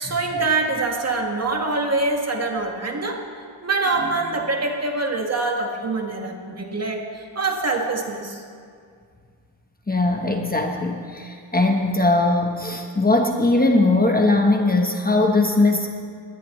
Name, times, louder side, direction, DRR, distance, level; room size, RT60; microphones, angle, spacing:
voice 1, 0.0-3.2 3.6-8.4, right 3 dB, 30° right, 2 dB, 1.8 m, -24 dB
voice 2, 9.9-15.9, left 2 dB, 20° left, 2 dB, 1.2 m, -20 dB
21.0 x 17.5 x 3.3 m, 2.1 s
wide cardioid pair, 125°, 47 cm